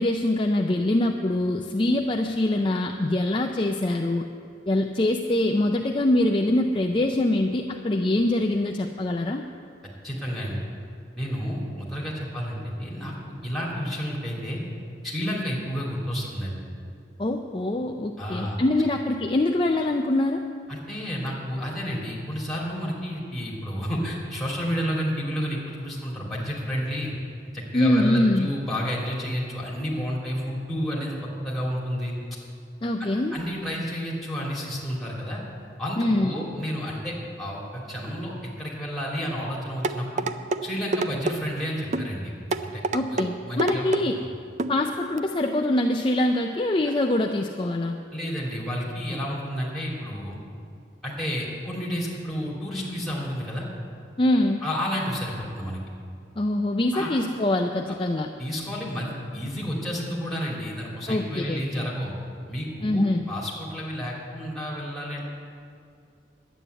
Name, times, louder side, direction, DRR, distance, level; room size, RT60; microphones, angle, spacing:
voice 1, 0.0-4.2 4.7-9.4 17.2-20.4 27.7-28.5 32.8-33.4 36.0-36.4 42.9-44.2 44.7-48.0 54.2-54.6 56.4-58.3 61.1-61.9 62.8-63.2, left 1 dB, 25° left, 3 dB, 0.5 m, -24 dB
voice 2, 10.0-10.6 11.1-13.1 13.4-14.6 15.0-16.6 18.2-18.6 20.7-27.1 27.5-32.1 33.0-35.4 35.8-40.3 40.6-42.3 42.6-42.8 43.1-43.9 44.1-44.3 48.1-50.4 51.0-53.7 54.6-55.8 56.9-57.1 58.4-62.1 62.5-65.2, equal, ahead, -5 dB, 2.8 m, -30 dB
sound 1, 39.8-40.6 40.9-41.4 41.9-42.1 42.5-43.3 43.6-44.0 44.6-44.8 45.2-45.3, right 3 dB, 40° right, 0.4 m, -26 dB
11.0 x 9.2 x 8.0 m, 2.3 s
head